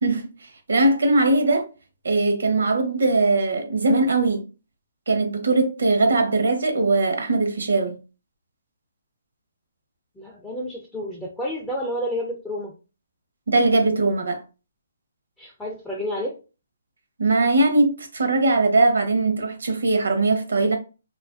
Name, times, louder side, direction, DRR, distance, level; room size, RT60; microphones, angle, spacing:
voice 1, 0.7-1.7 2.0-4.4 5.1-7.9 13.5-14.4 17.2-20.8, right 2 dB, 85° right, 0.7 m, -20 dB
voice 2, 10.2-12.7 15.4-16.4, equal, 5° left, 0.3 m, -30 dB
2.4 x 2.4 x 2.4 m
hypercardioid pair, 165°, 0 cm